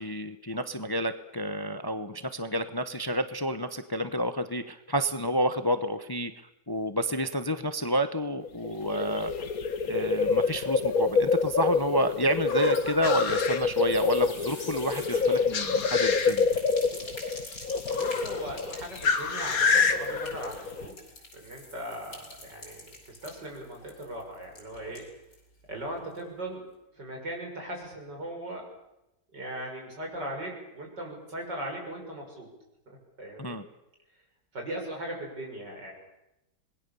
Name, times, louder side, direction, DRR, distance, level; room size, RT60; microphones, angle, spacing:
voice 1, 0.0-6.3 6.7-9.3 9.9-16.5 33.4-33.6, equal, 15° left, 10 dB, 0.9 m, -29 dB
sound 1, 8.4-20.9, left 4 dB, 55° left, 2.0 m, -26 dB
sound 2, 12.7-25.5 25.8-25.9 26.1-26.2, left 1 dB, 75° left, 7.0 m, -47 dB
voice 2, 17.9-21.0 21.3-25.0 25.7-26.6 26.9-28.7 29.3-32.5 32.9-33.6 34.5-35.9, right 1 dB, 85° right, 1 dB, 7.4 m, -39 dB
26.5 x 21.0 x 7.1 m, 0.88 s
omnidirectional pair, 1.8 m